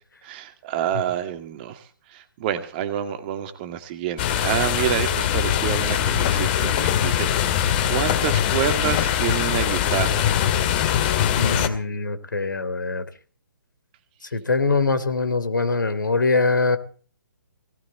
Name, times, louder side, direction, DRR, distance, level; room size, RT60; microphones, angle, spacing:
voice 1, 0.2-7.5 7.9-10.3, right 11 dB, 30° right, 9 dB, 2.1 m, -28 dB
sound 1, 4.2-11.7, left 10 dB, 30° left, 2.1 m, -22 dB
voice 2, 11.4-13.0 14.3-16.8, left 3 dB, 65° left, 13 dB, 3.1 m, -23 dB
18.5 x 18.0 x 4.0 m, 0.40 s
figure-of-eight pair, 135°, 11 cm